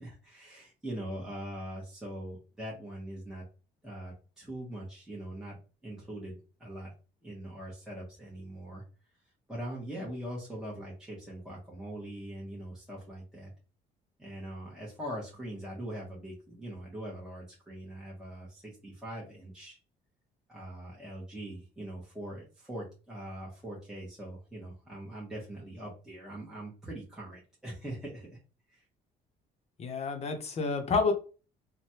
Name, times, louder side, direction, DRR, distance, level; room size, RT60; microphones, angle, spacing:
voice 1, 0.0-3.4 3.8-6.9 7.2-8.8 9.5-13.5 14.2-19.8 20.5-28.4 28.7-28.8, right 1 dB, 5° right, -6 dB, 1.0 m, -42 dB
voice 2, 29.8-31.1, left 4 dB, 40° left, 6 dB, 0.7 m, -29 dB
3.2 x 2.1 x 2.8 m, 0.35 s
cardioid pair, 110°, 17 cm